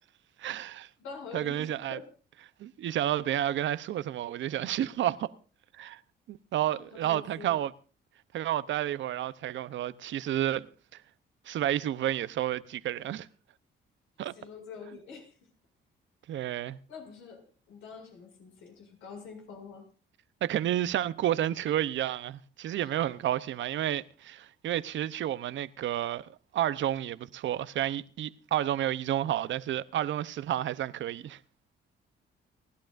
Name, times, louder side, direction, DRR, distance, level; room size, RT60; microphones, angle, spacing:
voice 1, 0.4-0.9 1.3-2.0 2.6-5.3 5.8-6.0 6.3-7.7 8.3-10.7 10.9-11.0 11.5-13.3 14.2-14.3 16.3-16.8 20.4-31.4, right 12 dB, 70° right, 0.8 m, -31 dB
voice 2, 1.0-2.0 6.7-7.5 14.3-15.4 16.9-19.9 22.8-23.1, left 5 dB, 90° left, 7.2 m, -46 dB
30.0 x 11.5 x 2.6 m
cardioid pair, 90°, 20 cm